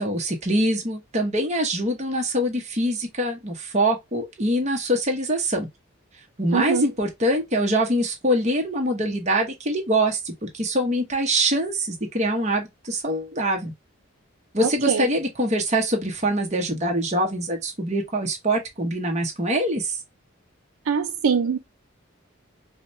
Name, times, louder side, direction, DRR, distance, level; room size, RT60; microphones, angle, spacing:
voice 1, 0.0-5.7 6.4-13.7 14.5-20.0, right 1 dB, 30° right, 1.0 m, -24 dB
voice 2, 6.5-6.9 14.9-15.1 20.9-21.6, right 6 dB, 80° right, 0.4 m, -22 dB
4.9 x 2.2 x 2.5 m
head